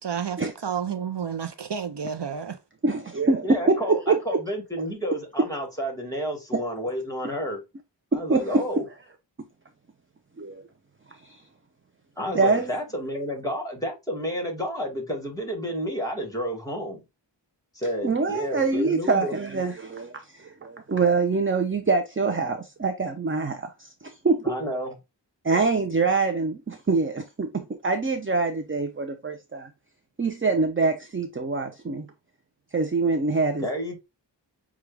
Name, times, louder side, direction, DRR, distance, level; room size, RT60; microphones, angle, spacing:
voice 1, 0.0-2.6, right 7 dB, 65° right, 0.6 m, -31 dB
voice 2, 2.8-4.4 6.5-6.6 8.1-8.6 10.4-10.6 11.2-11.4 12.3-12.7 18.0-24.5 25.4-29.7 30.2-32.1 32.7-33.6, right 3 dB, 30° right, 0.6 m, -25 dB
voice 3, 3.4-7.6 8.1-8.8 12.2-17.0 17.7-19.4 24.4-24.9 33.6-34.0, equal, 10° left, 1.8 m, -30 dB
6.0 x 2.4 x 3.3 m
wide cardioid pair, 45°, 44 cm